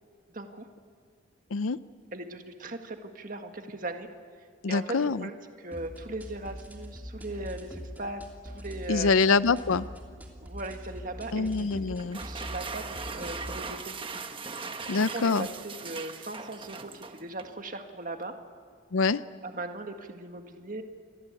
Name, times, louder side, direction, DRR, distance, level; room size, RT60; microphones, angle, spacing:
voice 1, 0.3-0.7 2.1-4.1 4.7-9.1 10.4-14.0 14.9-18.3 19.4-20.8, right 2 dB, 40° right, 5 dB, 1.9 m, -39 dB
voice 2, 4.6-5.3 8.9-9.9 11.3-12.2 14.9-15.5 18.9-19.2, left 4 dB, 90° left, 15 dB, 0.6 m, -25 dB
sound 1, 5.7-13.7, equal, 10° right, 2.8 m, -43 dB
sound 2, 12.0-17.6, right 4 dB, 25° right, 1.2 m, -39 dB
28.5 x 22.5 x 8.4 m, 2.2 s
head